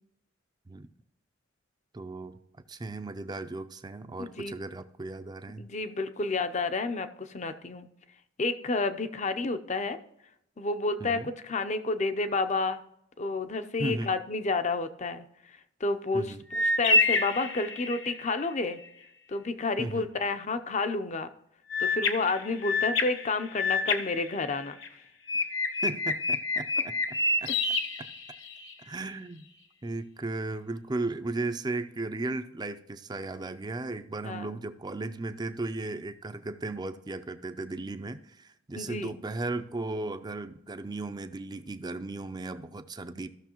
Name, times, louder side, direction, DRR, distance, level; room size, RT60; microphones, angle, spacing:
voice 1, 1.9-2.4 2.7-5.7 11.0-11.3 13.8-14.1 16.1-16.4 19.8-20.1 25.8-27.5 28.0-28.1 28.8-29.5 29.8-43.3, right 2 dB, 20° right, 10 dB, 0.5 m, -36 dB
voice 2, 4.2-4.5 5.6-7.9 8.4-10.0 10.6-12.8 13.2-18.8 19.3-21.3 21.8-24.8 34.2-34.6 38.8-39.2, left 3 dB, 35° left, 10 dB, 0.6 m, -30 dB
sound 1, 16.5-18.2 21.7-24.9 25.3-28.7, left 3 dB, 65° left, 0.8 m, -28 dB
15.0 x 6.3 x 3.0 m, 0.78 s
head